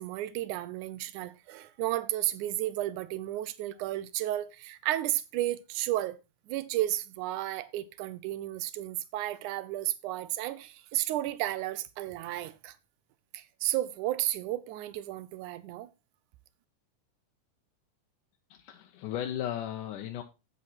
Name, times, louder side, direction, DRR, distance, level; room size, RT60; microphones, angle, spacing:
voice 1, 0.0-6.2 6.5-12.7 13.3-15.9, right 14 dB, 80° right, 2.2 m, -33 dB
voice 2, 18.5-20.2, left 11 dB, 90° left, 2.4 m, -35 dB
8.5 x 7.9 x 4.2 m
omnidirectional pair, 3.6 m